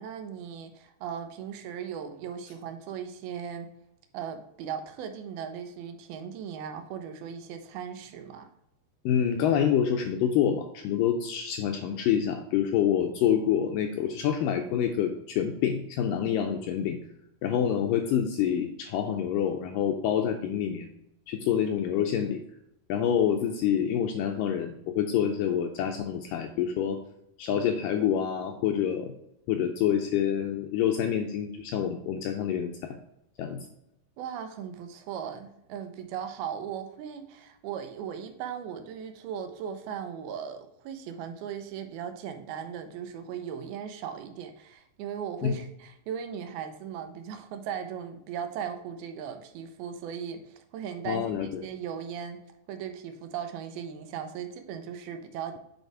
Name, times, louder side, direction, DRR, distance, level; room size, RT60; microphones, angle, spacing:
voice 1, 0.0-3.7 4.1-8.5 34.2-52.4 52.7-55.6, right 8 dB, 80° right, 7 dB, 2.6 m, -38 dB
voice 2, 9.1-17.0 17.4-20.9 21.3-22.4 22.9-27.0 27.4-29.1 29.5-33.0 33.4-33.6 45.4-45.6 51.1-51.6, left 9 dB, 80° left, 5 dB, 2.0 m, -27 dB
7.9 x 4.3 x 4.7 m, 0.80 s
omnidirectional pair, 4.4 m